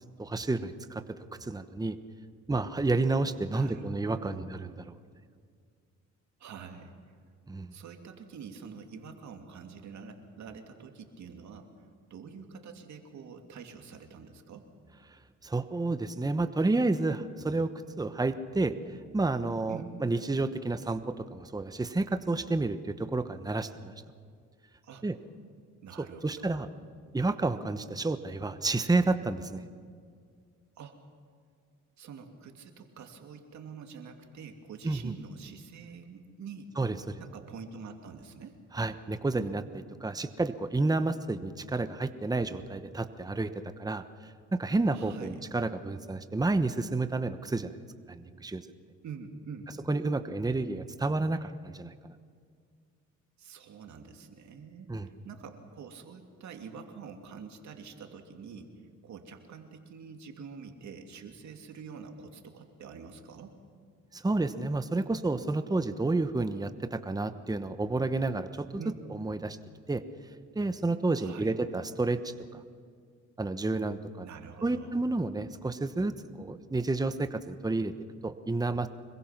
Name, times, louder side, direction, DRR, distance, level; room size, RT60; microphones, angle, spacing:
voice 1, 0.2-1.0 1.4-2.0 2.5-4.9 7.5-7.7 15.4-17.7 18.0-23.9 25.0-25.2 26.0-26.7 27.1-29.7 34.8-35.1 36.8-37.2 38.7-47.8 48.1-48.6 49.9-52.1 54.9-55.1 64.1-68.8 69.1-69.6 69.9-70.0 70.5-72.6 73.4-74.3 74.6-77.9 78.2-78.9, right 2 dB, 10° right, 10 dB, 1.1 m, -30 dB
voice 2, 3.5-4.5 6.4-6.9 7.7-11.7 12.1-14.7 19.7-20.0 24.8-25.0 25.8-26.6 30.8-31.0 32.0-36.7 37.2-38.6 44.9-45.4 49.0-49.7 53.4-58.7 59.0-63.6 68.8-69.0 71.2-71.6 74.2-75.0, right 6 dB, 65° right, 4 dB, 2.8 m, -46 dB
26.0 x 22.0 x 6.0 m, 2.1 s
cardioid pair, 90°, 30 cm